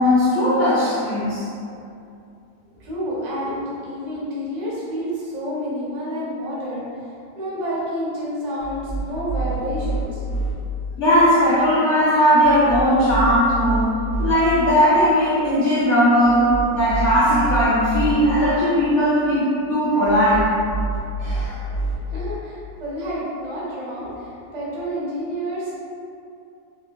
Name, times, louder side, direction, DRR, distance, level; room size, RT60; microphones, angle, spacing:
voice 1, 0.0-1.5 11.0-13.9 14.2-20.5 21.2-21.6, equal, 85° left, -8 dB, 0.6 m, -18 dB
voice 2, 2.8-6.9 7.3-10.2 22.1-25.7, equal, 35° right, -8 dB, 0.7 m, -29 dB
sound 1, 8.6-10.5 12.4-14.3 16.2-18.1 20.0-21.9, right 2 dB, 40° left, 0.3 m, -27 dB
5.7 x 2.3 x 2.2 m, 2.5 s
omnidirectional pair, 1.9 m